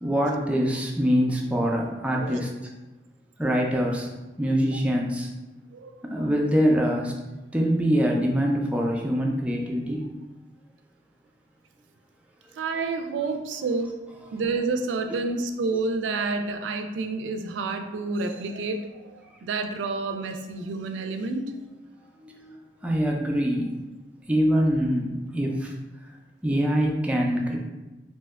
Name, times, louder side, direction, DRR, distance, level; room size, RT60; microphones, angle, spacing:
voice 1, 0.0-2.5 3.4-4.1 4.4-5.3 6.1-7.1 7.5-10.1 22.2-23.7 24.3-25.7 26.4-27.6, equal, 5° right, -1 dB, 0.3 m, -24 dB
voice 2, 12.6-14.0 14.3-21.5, right 3 dB, 85° right, 6 dB, 0.3 m, -29 dB
2.8 x 2.2 x 3.4 m, 1.1 s
head